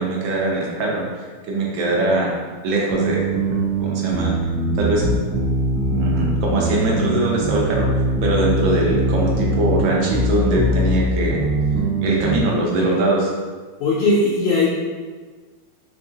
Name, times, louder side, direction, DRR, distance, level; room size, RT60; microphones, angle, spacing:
voice 1, 0.0-2.3 2.6-3.2 3.8-4.3 4.7-5.0 5.9-7.9 8.2-11.4 12.0-13.3, right 2 dB, 70° right, -3 dB, 1.5 m, -21 dB
sound 1, 2.9-12.4, right 1 dB, 50° right, 0.9 m, -22 dB
voice 2, 13.8-14.7, left 2 dB, 70° left, -5 dB, 1.1 m, -18 dB
3.7 x 3.4 x 2.7 m, 1.4 s
omnidirectional pair, 2.3 m